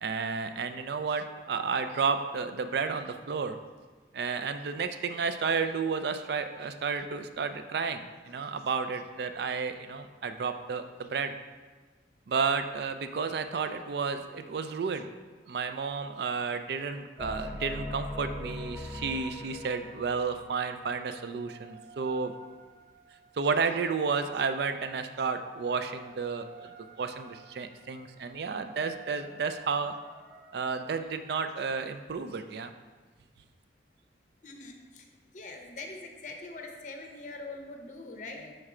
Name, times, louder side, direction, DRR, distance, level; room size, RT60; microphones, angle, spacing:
voice 1, 0.0-3.6 4.1-11.3 12.3-15.1 15.5-22.3 23.4-29.9 30.5-32.7, right 5 dB, 60° right, 9 dB, 0.3 m, -32 dB
sound 1, 17.2-23.4 24.2-31.2, left 1 dB, 15° right, 0.8 m, -45 dB
voice 2, 34.4-35.1 35.3-38.6, left 2 dB, 40° left, 3 dB, 0.6 m, -43 dB
6.1 x 3.2 x 4.8 m, 1.3 s
head